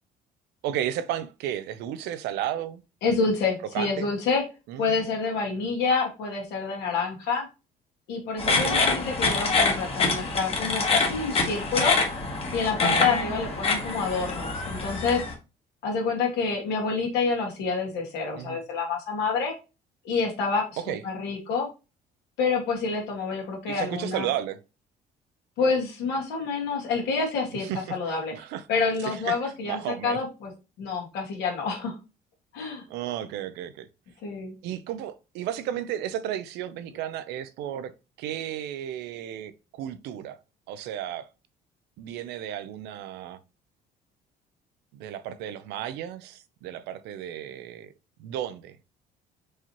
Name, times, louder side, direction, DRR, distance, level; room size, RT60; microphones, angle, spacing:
voice 1, 0.6-2.8 3.7-4.1 4.7-5.1 8.5-9.0 13.0-13.5 18.4-18.6 20.8-21.0 23.7-24.6 27.5-28.6 29.0-30.2 32.9-33.9 34.6-37.9 38.2-40.4 40.7-41.3 42.0-43.4 44.9-47.9 48.2-48.8, right 11 dB, 90° right, 0.5 m, -33 dB
voice 2, 3.0-4.4 4.8-7.5 8.1-12.0 12.5-15.2 15.8-19.5 20.0-21.7 22.4-24.3 25.6-28.3 28.7-30.5 30.8-31.9 32.5-32.8 34.2-34.6, left 4 dB, 80° left, 1.7 m, -28 dB
sound 1, 8.4-15.3, left 3 dB, 35° left, 1.2 m, -26 dB
4.7 x 2.9 x 2.9 m
cardioid pair, 110°, 17 cm